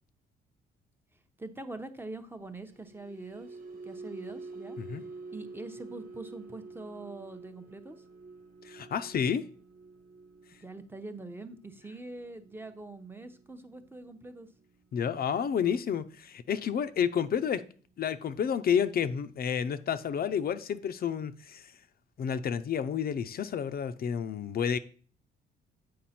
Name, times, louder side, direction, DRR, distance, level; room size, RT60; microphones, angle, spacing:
voice 1, 1.4-3.6 3.8-4.8 5.3-8.0 10.6-14.5, right 2 dB, 10° right, 0.8 m, -43 dB
sound 1, 2.5-18.9 19.2-19.5 19.9-20.1, right 3 dB, 45° right, 1.0 m, -49 dB
voice 2, 8.6-9.4 14.9-17.6 18.0-21.7 22.2-24.8, left 8 dB, 50° left, 0.5 m, -30 dB
7.6 x 4.9 x 4.3 m
cardioid pair, 90°, 20 cm